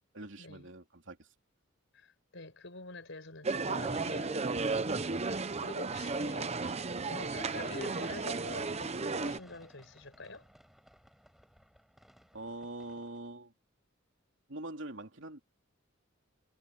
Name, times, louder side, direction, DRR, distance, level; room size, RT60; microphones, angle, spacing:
voice 1, 0.1-1.3 12.3-13.5 14.5-15.4, right 2 dB, 65° right, 3.2 m, -44 dB
voice 2, 1.9-10.5, left 2 dB, 65° left, 5.7 m, -47 dB
sound 1, 3.4-9.4, right 3 dB, 30° right, 0.8 m, -34 dB
sound 2, 7.3-13.3, equal, ahead, 7.8 m, -60 dB
head